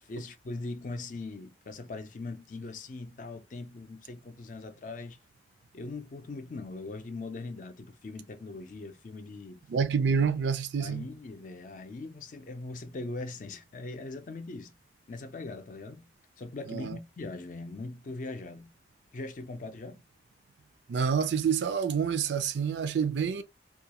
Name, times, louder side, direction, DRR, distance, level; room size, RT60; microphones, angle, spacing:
voice 1, 0.0-5.2 5.7-9.6 10.8-14.7 15.1-16.1 16.4-18.7 19.1-20.0, left 3 dB, 50° left, 0.4 m, -40 dB
voice 2, 9.7-11.1 16.7-17.0 20.9-23.4, right 6 dB, 85° right, 0.4 m, -28 dB
2.4 x 2.2 x 2.8 m
head